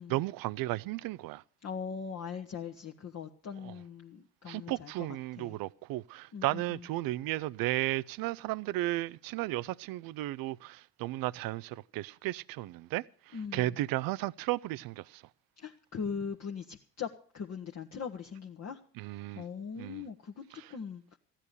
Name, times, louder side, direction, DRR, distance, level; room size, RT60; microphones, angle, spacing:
voice 1, 0.0-1.4 3.6-3.7 4.5-15.2 19.0-19.4 19.8-20.0 20.6-20.7, right 17 dB, 50° right, 0.6 m, -34 dB
voice 2, 1.6-5.1 5.3-5.5 6.3-6.8 13.3-13.8 15.6-18.8 19.3-21.2, left 6 dB, 35° left, 1.3 m, -40 dB
15.0 x 10.0 x 6.7 m
figure-of-eight pair, 55°, 47 cm